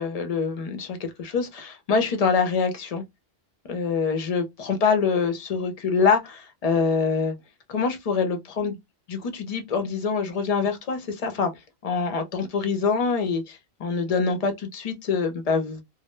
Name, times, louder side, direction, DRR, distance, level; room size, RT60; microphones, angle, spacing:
voice 1, 0.0-3.0 3.7-7.3 7.7-8.8 9.1-11.5 11.8-15.8, left 5 dB, 50° left, 0.5 m, -25 dB
2.1 x 2.0 x 2.9 m
omnidirectional pair, 1.1 m